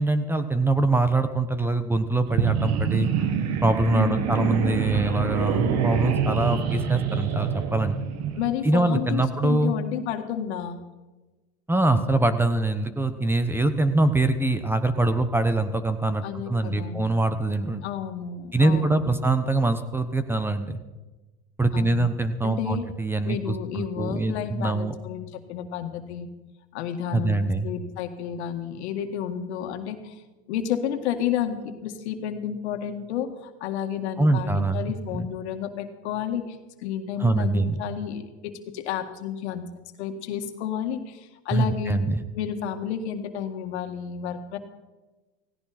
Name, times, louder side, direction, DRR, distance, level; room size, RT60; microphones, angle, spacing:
voice 1, 0.0-3.1 3.6-8.0 8.6-9.7 11.7-17.8 18.5-20.8 21.6-24.9 27.1-27.7 34.2-34.9 35.1-35.3 37.2-37.8 41.5-42.2, right 2 dB, 5° right, 11 dB, 1.0 m, -24 dB
sound 1, 2.3-8.5, right 7 dB, 50° right, 2.0 m, -26 dB
voice 2, 3.9-4.3 8.4-10.8 16.2-17.1 17.8-19.1 21.7-22.1 22.4-22.9 23.2-26.3 26.7-30.2 30.5-39.7 40.0-42.0 42.3-44.6, left 9 dB, 85° left, 7 dB, 2.0 m, -31 dB
17.0 x 16.5 x 4.3 m, 1.2 s
supercardioid pair, 120°, 33 cm